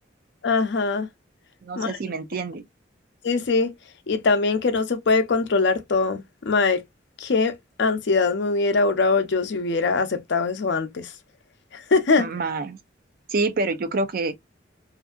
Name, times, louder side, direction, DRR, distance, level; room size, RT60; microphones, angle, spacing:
voice 1, 0.4-1.1 1.8-2.0 3.2-3.7 4.1-6.8 7.2-11.1 11.7-12.3, left 4 dB, 65° left, 0.5 m, -22 dB
voice 2, 1.6-2.6 12.2-12.8 13.3-14.4, right 3 dB, 50° right, 0.4 m, -27 dB
2.5 x 2.5 x 2.3 m
head